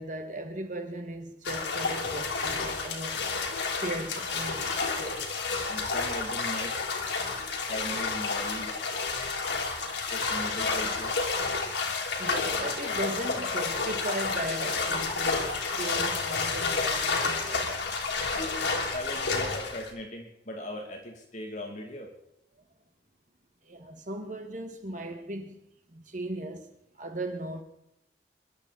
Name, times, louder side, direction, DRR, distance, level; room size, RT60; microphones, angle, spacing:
voice 1, 0.0-3.2 3.7-5.4 9.9-10.0 12.2-17.7 23.6-25.6 25.9-26.7 27.0-27.6, right 1 dB, 45° right, 1.8 m, -37 dB
sound 1, 1.4-19.9, left 4 dB, 90° left, 3.1 m, -30 dB
voice 2, 5.7-6.8 7.6-8.8 10.1-11.1 18.3-18.6 18.9-22.1, equal, 40° left, 2.7 m, -39 dB
26.0 x 11.5 x 4.3 m
head